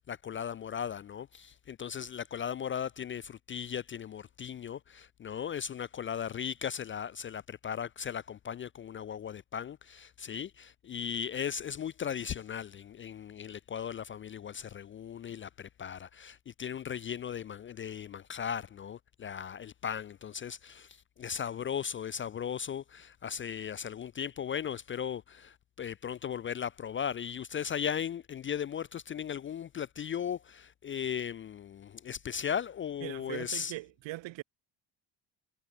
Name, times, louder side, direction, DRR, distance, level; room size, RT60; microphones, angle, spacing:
voice 1, 0.0-33.7, left 8 dB, 30° left, 0.4 m, -37 dB
voice 2, 33.0-34.4, right 18 dB, 80° right, 3.7 m, -40 dB
cardioid pair, 160°, 44 cm